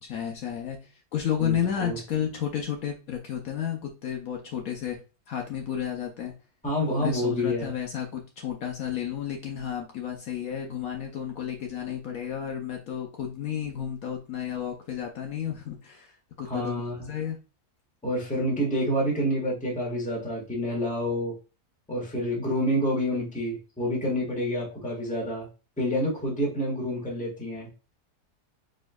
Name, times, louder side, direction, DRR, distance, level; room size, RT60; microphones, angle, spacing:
voice 1, 0.0-5.0 5.3-6.3 6.9-17.4, left 9 dB, 65° left, 2 dB, 1.1 m, -32 dB
voice 2, 1.4-2.0 6.6-7.7 16.5-17.1 18.0-21.3 21.9-25.5 25.8-27.7, equal, 5° left, -3 dB, 1.3 m, -28 dB
4.2 x 3.7 x 2.3 m, 0.32 s
omnidirectional pair, 1.7 m